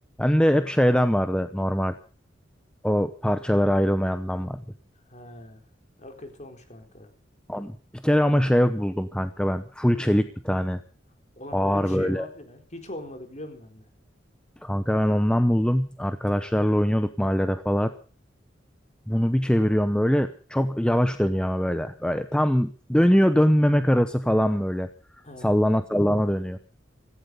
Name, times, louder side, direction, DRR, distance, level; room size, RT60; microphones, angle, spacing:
voice 1, 0.2-1.9 2.8-4.6 7.5-7.8 8.0-10.8 11.5-12.3 14.6-17.9 19.1-24.9 25.4-26.6, equal, 5° left, 10 dB, 0.8 m, -22 dB
voice 2, 5.1-5.6 6.0-7.1 11.4-13.9 25.2-25.6, left 1 dB, 40° left, 5 dB, 4.1 m, -41 dB
16.5 x 16.0 x 5.3 m, 0.40 s
head